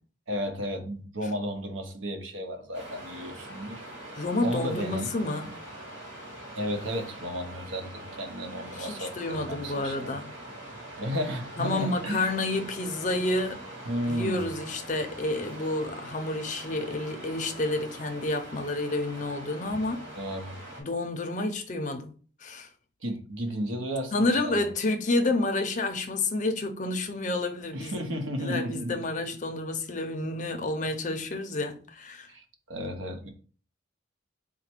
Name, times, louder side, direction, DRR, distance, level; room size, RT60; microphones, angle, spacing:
voice 1, 0.3-3.8 4.4-5.1 6.5-10.1 11.0-12.3 13.9-14.5 20.1-20.6 23.0-24.7 27.7-29.1 32.3-33.3, equal, 80° right, 0.9 m, -33 dB
Waves surf, 2.7-20.8, right 1 dB, 65° right, 2.2 m, -43 dB
voice 2, 4.1-5.5 8.7-10.3 11.6-13.6 14.1-20.0 20.8-22.1 22.4-22.7 24.1-28.0 28.4-32.3, left 2 dB, 40° left, 0.5 m, -29 dB
4.0 x 2.2 x 4.4 m
head